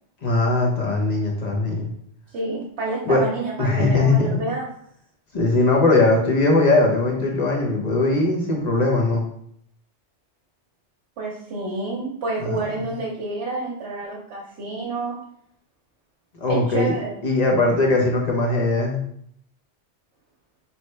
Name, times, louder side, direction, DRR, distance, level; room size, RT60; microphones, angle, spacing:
voice 1, 0.2-1.9 3.1-3.2 3.6-4.5 5.3-9.2 12.4-12.8 16.4-16.9 17.2-19.0, left 2 dB, 40° left, -1 dB, 1.0 m, -20 dB
voice 2, 2.3-4.7 11.2-15.2 16.5-17.2, right 3 dB, 70° right, -4 dB, 1.0 m, -29 dB
4.1 x 3.1 x 3.2 m, 0.69 s
omnidirectional pair, 1.2 m